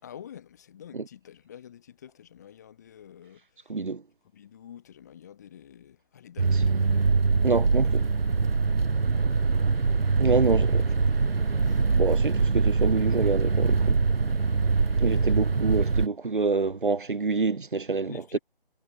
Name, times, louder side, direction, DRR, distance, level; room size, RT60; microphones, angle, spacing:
voice 1, 0.0-3.7 4.3-7.0 8.9-9.5 10.4-11.9 15.1-15.4 18.1-18.4, left 9 dB, 20° left, 6.3 m, -49 dB
voice 2, 3.7-4.0 7.4-8.0 10.2-10.9 11.9-14.0 15.0-18.4, right 4 dB, 60° right, 2.2 m, -27 dB
sound 1, 6.4-16.1, right 4 dB, 75° right, 1.7 m, -23 dB
figure-of-eight pair, 175°, 29 cm